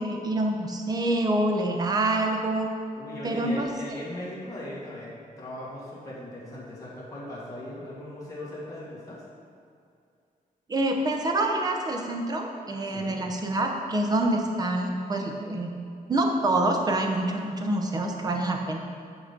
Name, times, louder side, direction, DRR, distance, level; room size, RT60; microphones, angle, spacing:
voice 1, 0.0-2.7 3.2-3.7 10.7-15.8 16.1-18.8, right 1 dB, 25° right, 2 dB, 0.7 m, -26 dB
voice 2, 3.0-9.2 12.8-13.1, left 1 dB, 25° left, -7 dB, 1.8 m, -38 dB
8.6 x 4.0 x 5.3 m, 2.4 s
wide cardioid pair, 170°, 15 cm